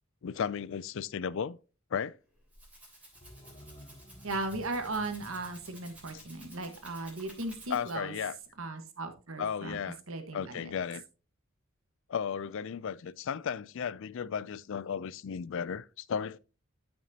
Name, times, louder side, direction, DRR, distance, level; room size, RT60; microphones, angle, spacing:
voice 1, 0.2-1.6 1.9-2.2 6.1-6.2 7.7-8.4 9.4-10.0 10.3-11.0 12.1-16.4, left 7 dB, 65° left, 0.4 m, -35 dB
Rattle (instrument), 2.2-8.2, right 1 dB, 5° right, 3.1 m, -54 dB
sound 1, 3.1-7.9 8.1-8.2, equal, 25° left, 1.1 m, -54 dB
voice 2, 4.2-8.1 8.6-9.8 10.1-10.7, right 2 dB, 70° right, 1.4 m, -37 dB
13.0 x 6.1 x 2.8 m
head